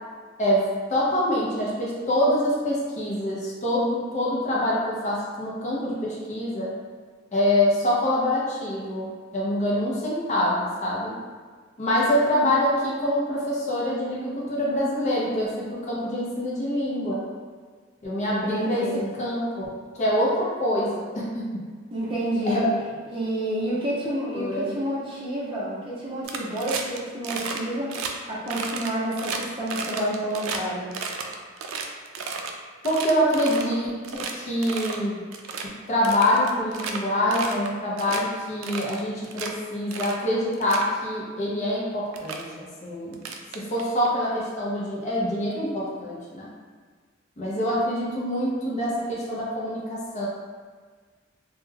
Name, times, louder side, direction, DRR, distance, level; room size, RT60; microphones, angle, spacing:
voice 1, 0.4-6.7 7.3-11.1 11.8-17.2 18.0-18.9 19.2-19.7 20.0-21.6 22.4-22.6 24.3-24.7 32.8-35.2 35.9-43.2 43.5-46.5 47.4-50.3, left 1 dB, 35° left, -5 dB, 0.5 m, -25 dB
voice 2, 18.3-19.0 21.9-22.6 23.1-27.9 28.3-30.9, right 1 dB, 25° right, -7 dB, 0.6 m, -29 dB
sound 1, 26.2-27.0 27.2-27.6 27.9-28.1 28.5-30.6 30.9-32.5 32.8-33.7 34.0-34.3 34.6-35.0 35.3-35.6 36.0-37.0 37.3-37.7 38.0-38.2 38.6-39.5 39.9-40.2 40.5-40.9 41.7-41.8 42.1-42.4 43.1-44.1, right 5 dB, 85° right, 0.3 m, -33 dB
2.2 x 2.1 x 3.2 m, 1.5 s
head